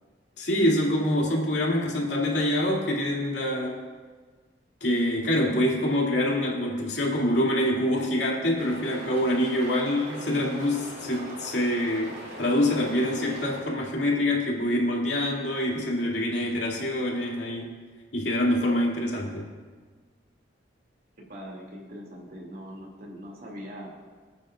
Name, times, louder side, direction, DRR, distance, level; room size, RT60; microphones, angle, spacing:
voice 1, 0.4-3.8 4.8-17.8 18.1-19.5, left 1 dB, 65° left, -3 dB, 2.8 m, -25 dB
sound 1, 8.6-13.6, right 1 dB, 80° right, 3.8 m, -41 dB
voice 2, 21.3-23.9, equal, 55° right, -2 dB, 2.8 m, -41 dB
24.5 x 9.1 x 2.6 m, 1.5 s
head